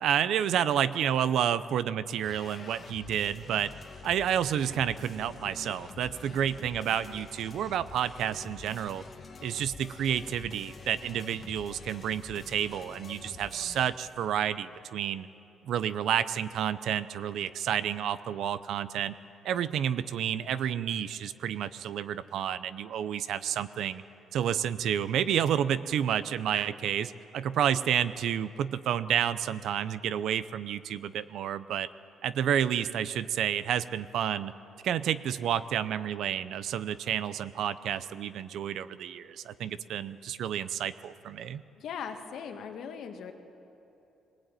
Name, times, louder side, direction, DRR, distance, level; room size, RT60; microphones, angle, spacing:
voice 1, 0.0-3.7 4.0-9.0 9.4-15.3 15.6-19.1 19.4-24.0 24.3-31.9 32.2-34.5 34.8-41.6, right 9 dB, 60° right, 15 dB, 0.6 m, -30 dB
sound 1, 2.2-13.9, left 4 dB, 30° left, 1.4 m, -47 dB
voice 2, 41.8-43.3, left 7 dB, 55° left, 5 dB, 1.7 m, -39 dB
21.5 x 20.0 x 9.1 m, 2.9 s
cardioid pair, 175°, 0 cm